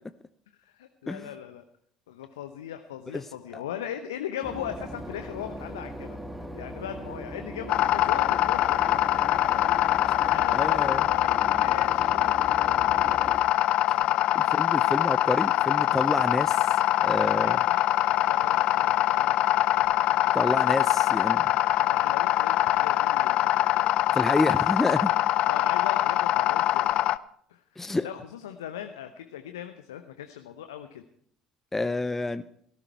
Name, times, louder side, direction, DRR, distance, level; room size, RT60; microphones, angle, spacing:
voice 1, 0.6-1.6 2.1-6.2 6.5-8.6 8.9-9.4 9.6-12.7 14.4-14.7 17.2-20.4 20.7-21.4 21.8-24.0 24.4-25.1 25.4-26.9 27.5-31.0, left 10 dB, 75° left, 7 dB, 0.9 m, -39 dB
Boat Water vehicle / Engine, 4.4-13.4, equal, 5° right, 2.2 m, -39 dB
sound 1, 7.7-27.2, left 14 dB, 55° left, 0.5 m, -23 dB
voice 2, 10.5-11.1 13.9-14.0 14.3-16.7 17.0-17.6 20.3-21.5 24.1-25.1 27.8-28.1 31.7-32.4, left 2 dB, 15° left, 12 dB, 0.6 m, -28 dB
17.0 x 14.0 x 4.6 m, 0.64 s
figure-of-eight pair, 60°, 2 cm